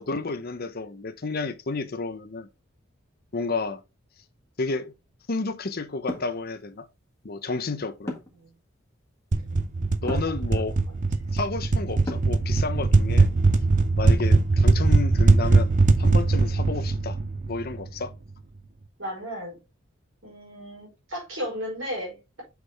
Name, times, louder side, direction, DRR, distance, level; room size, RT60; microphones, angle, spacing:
voice 1, 0.0-2.5 3.3-3.8 4.6-4.9 5.3-6.9 7.2-8.2 10.0-10.8 11.3-13.3 14.0-15.7 16.0-17.2 17.4-18.1, left 3 dB, 45° left, 0.8 m, -31 dB
sound 1, 6.1-6.4 8.1-8.4 10.1-10.4 12.1-12.4, left 1 dB, 15° left, 1.7 m, -33 dB
sound 2, 9.3-18.0, right 3 dB, 40° right, 0.5 m, -21 dB
voice 2, 10.0-10.9 19.0-19.6 20.2-22.4, equal, 65° right, 4.3 m, -35 dB
6.4 x 4.8 x 3.5 m
head